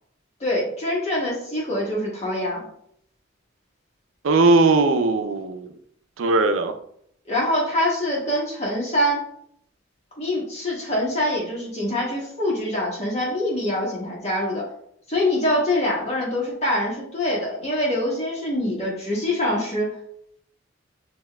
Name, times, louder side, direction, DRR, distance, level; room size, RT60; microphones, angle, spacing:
voice 1, 0.4-2.6 7.3-9.2 10.2-14.6 15.1-19.9, left 1 dB, 35° left, -5 dB, 1.5 m, -24 dB
voice 2, 4.2-5.7 6.2-6.8, right 3 dB, 85° right, 8 dB, 0.5 m, -19 dB
6.9 x 2.8 x 2.2 m, 0.69 s
head